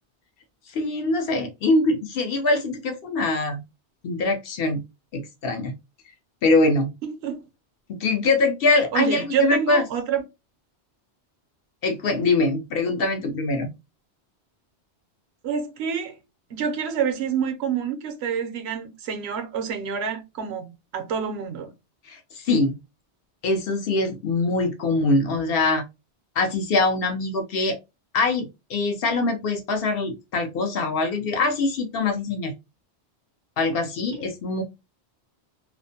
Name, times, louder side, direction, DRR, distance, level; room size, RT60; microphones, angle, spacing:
voice 1, 0.7-3.6 4.0-4.8 5.1-5.8 6.4-6.9 7.9-9.8 11.8-13.7 22.1-22.8 23.4-25.8 26.4-27.8 28.1-32.5 33.6-34.6, left 3 dB, 65° left, 0.7 m, -23 dB
voice 2, 7.0-7.4 8.9-10.2 15.4-16.2 16.5-21.7 34.1-34.2, right 7 dB, 75° right, 0.8 m, -27 dB
2.4 x 2.0 x 2.6 m
omnidirectional pair, 1.1 m